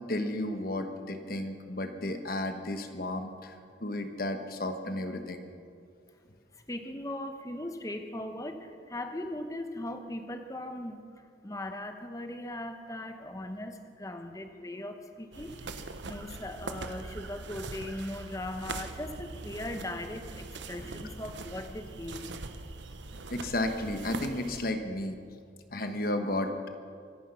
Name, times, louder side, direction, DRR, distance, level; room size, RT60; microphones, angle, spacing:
voice 1, 0.1-3.5 3.8-5.5 23.3-25.2 25.7-26.7, left 1 dB, 50° left, 7 dB, 1.3 m, -33 dB
voice 2, 6.7-11.0 11.4-22.2, left 1 dB, 15° left, 6 dB, 1.0 m, -39 dB
sound 1, 15.3-24.7, right 3 dB, 80° right, 1.0 m, -42 dB
24.5 x 10.0 x 5.7 m, 2.3 s
head